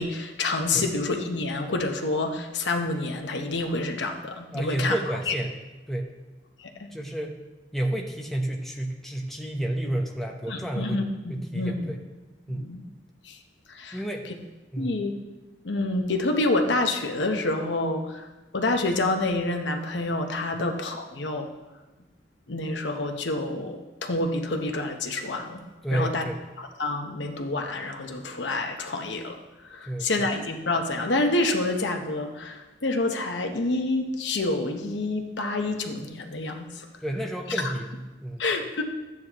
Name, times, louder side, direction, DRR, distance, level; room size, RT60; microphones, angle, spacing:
voice 1, 0.0-5.3 6.6-6.9 8.0-8.1 10.5-12.0 12.5-12.8 13.2-13.4 13.7-14.0 14.8-15.2 15.6-18.3 18.5-21.5 22.5-25.6 25.9-26.2 26.6-29.4 29.7-36.9 37.5-37.7 38.4-38.8, left 2 dB, 85° left, 4 dB, 1.0 m, -28 dB
voice 2, 4.5-5.5 5.9-6.1 6.9-7.3 7.7-11.0 11.3-12.0 12.5-12.7 13.9-14.3 14.7-15.1 25.8-26.4 29.9-30.3 37.0-38.4, right 1 dB, ahead, 0 dB, 0.8 m, -30 dB
13.0 x 9.3 x 3.0 m, 1.1 s
head